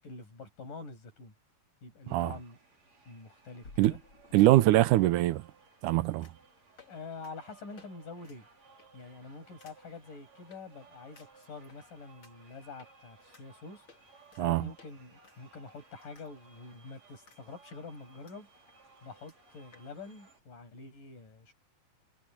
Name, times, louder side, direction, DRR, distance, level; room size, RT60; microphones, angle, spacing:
voice 1, 0.0-1.3 1.8-2.6 3.1-4.0 6.9-8.5 8.9-21.5, left 4 dB, 90° left, 8.7 m, -47 dB
sound 1, 1.1-1.2 3.6-4.9 6.2-6.5 6.8-7.0 7.2-7.3 7.8-7.9 8.2-8.4 8.8-9.1 9.6-9.8 10.5-10.6 11.2-11.8 12.2-12.3 12.8-12.9 13.3-13.4 13.9-14.4 14.8-14.9 15.2-16.3 16.6-16.7 17.3-17.4 17.7-18.4 18.7-18.8 19.0-19.1 19.3-19.4 19.7-19.9, left 4 dB, 40° left, 3.7 m, -56 dB
sound 2, 2.1-20.4, right 4 dB, 55° right, 6.9 m, -60 dB
voice 2, 4.3-5.5 5.8-6.3 14.4-14.7, right 16 dB, 80° right, 2.2 m, -23 dB
omnidirectional pair, 3.6 m